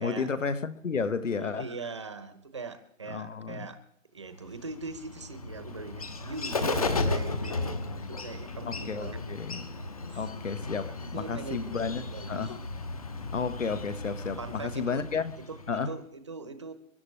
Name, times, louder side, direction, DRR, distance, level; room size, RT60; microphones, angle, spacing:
voice 1, 0.0-1.7 3.1-3.7 7.3-7.4 8.7-9.7 10.1-12.6 13.3-15.3 15.7-16.0, left 5 dB, 65° left, 1.6 m, -32 dB
voice 2, 1.4-3.8 4.1-9.4 10.0-10.3 10.6-10.7 11.0-12.5 14.4-15.0 15.5-15.6 15.9-16.7, right 4 dB, 20° right, 0.9 m, -41 dB
Bird, 4.4-15.9, left 3 dB, 25° left, 0.9 m, -35 dB
29.0 x 11.5 x 3.4 m
hypercardioid pair, 170°, 41 cm